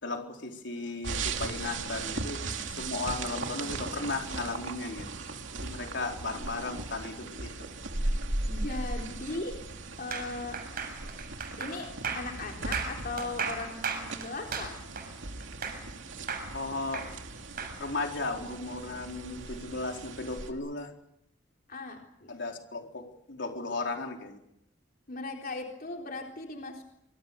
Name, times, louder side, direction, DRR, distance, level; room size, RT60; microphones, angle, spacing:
voice 1, 0.0-2.4 2.7-5.1 5.6-7.7 16.5-17.1 17.8-20.9 22.3-24.4, left 3 dB, 65° left, 2 dB, 4.2 m, -35 dB
sound 1, 1.0-20.5, right 3 dB, 75° right, 2.7 m, -38 dB
voice 2, 8.5-9.6 10.0-10.6 11.6-11.9 12.1-14.8 21.7-22.4 25.1-26.8, left 3 dB, 50° left, 1 dB, 3.9 m, -38 dB
sound 2, 10.1-16.0 16.3-17.7, right 5 dB, 50° right, 7.1 m, -35 dB
26.0 x 26.0 x 7.0 m, 0.79 s
head